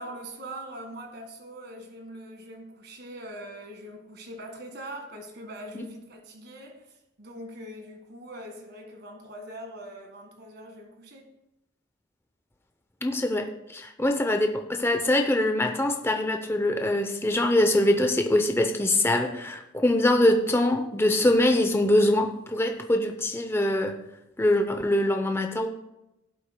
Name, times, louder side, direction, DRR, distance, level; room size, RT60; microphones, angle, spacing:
voice 1, 0.0-11.3, right 1 dB, 55° right, 1.7 m, -42 dB
voice 2, 13.0-24.0 24.4-25.7, left 1 dB, 10° left, 0.6 m, -23 dB
16.5 x 8.1 x 2.2 m
head